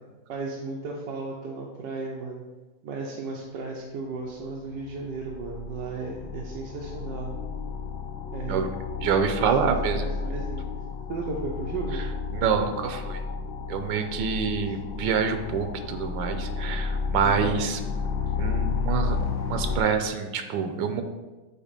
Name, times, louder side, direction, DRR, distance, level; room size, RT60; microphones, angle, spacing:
voice 1, 0.3-2.4 2.8-7.3 8.3-8.7 9.6-10.6 11.1-12.1 14.5-14.6 17.2-17.6, right 3 dB, 75° right, -2 dB, 1.4 m, -35 dB
sound 1, 4.4-4.5 4.7-19.8, left 4 dB, 85° left, 0.6 m, -32 dB
voice 2, 9.0-10.1 12.3-13.2 13.7-17.8 18.4-19.2 19.5-21.0, right 6 dB, 90° right, 6 dB, 1.3 m, -26 dB
8.3 x 2.9 x 5.2 m, 1.2 s
omnidirectional pair, 2.0 m